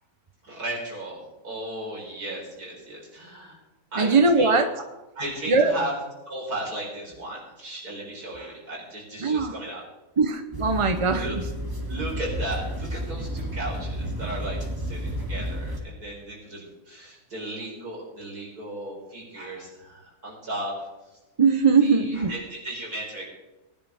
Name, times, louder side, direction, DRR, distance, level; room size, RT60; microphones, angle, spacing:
voice 1, 0.4-3.6 3.9-4.6 5.1-5.9 6.3-9.8 11.1-11.3 11.9-20.7 21.8-23.3, right 1 dB, 75° right, -3 dB, 5.1 m, -35 dB
voice 2, 4.0-4.7 5.5-5.8 9.2-9.5 10.2-11.3 21.4-22.3, right 4 dB, 40° right, 7 dB, 0.4 m, -20 dB
sound 1, 10.5-15.8, equal, 15° right, 2.2 m, -31 dB
19.5 x 10.5 x 3.5 m, 1.1 s
omnidirectional pair, 1.6 m